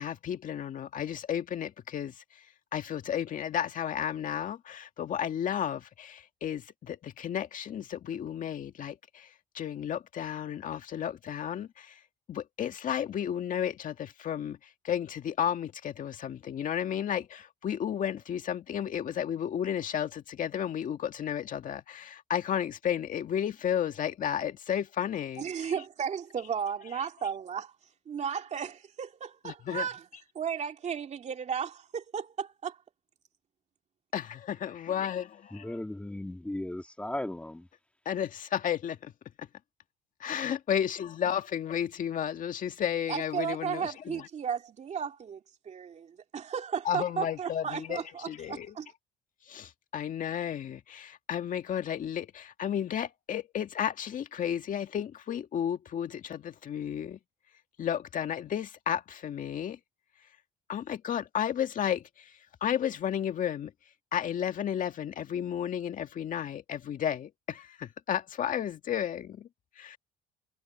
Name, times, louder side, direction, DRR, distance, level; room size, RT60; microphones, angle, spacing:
voice 1, 0.0-2.5 2.7-12.0 12.3-25.5 29.4-29.9 34.1-35.7 38.1-39.1 39.4-39.5 40.2-44.3 46.8-48.7 49.5-57.2 57.8-59.8 60.7-63.7 64.1-69.5 69.8-70.0, left 9 dB, 50° left, 2.0 m, -33 dB
voice 2, 25.4-27.7 28.1-30.0 30.3-32.8 43.1-48.9, right 7 dB, 40° right, 2.5 m, -34 dB
voice 3, 35.5-37.7, left 1 dB, 5° left, 2.0 m, -36 dB
cardioid pair, 110°, 17 cm